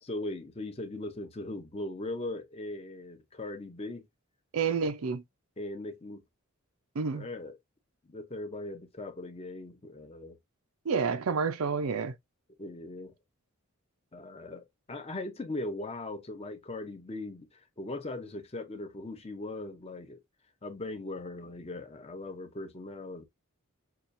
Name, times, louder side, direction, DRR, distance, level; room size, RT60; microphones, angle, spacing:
voice 1, 0.0-4.1 5.6-6.2 7.1-7.6 8.0-10.4 12.6-13.1 14.1-20.2 20.6-23.2, left 2 dB, 25° left, 0.6 m, -39 dB
voice 2, 4.5-5.2 6.9-7.3 10.9-12.1, right 5 dB, 75° right, 0.5 m, -29 dB
5.6 x 2.4 x 2.5 m
head